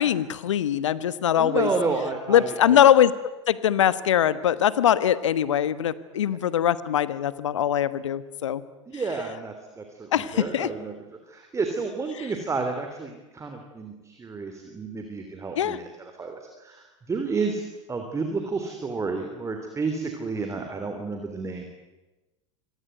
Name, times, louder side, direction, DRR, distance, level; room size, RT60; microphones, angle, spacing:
voice 1, 0.0-1.7 2.3-8.6 10.1-10.7 15.6-15.8, left 10 dB, 75° left, 16 dB, 1.3 m, -22 dB
voice 2, 1.4-2.8 8.9-11.0 11.3-15.9 16.2-17.6 17.9-21.7, right 4 dB, 20° right, 5 dB, 3.4 m, -31 dB
26.0 x 19.5 x 9.3 m, 1.1 s
figure-of-eight pair, 85°, 16 cm